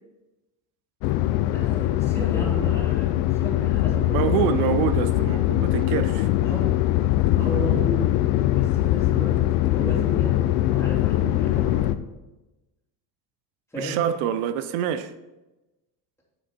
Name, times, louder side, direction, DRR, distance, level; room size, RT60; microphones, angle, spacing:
sound 1, 1.0-12.0, left 14 dB, 80° left, 0.7 m, -22 dB
voice 1, 1.5-4.5 6.4-6.7 7.4-8.1 8.5-9.4 9.7-10.4 10.7-11.9 13.7-14.0, equal, 5° left, 3.0 m, -33 dB
voice 2, 4.1-6.3 13.7-15.1, right 10 dB, 85° right, 0.7 m, -26 dB
7.7 x 6.5 x 4.3 m
cardioid pair, 120°, 45 cm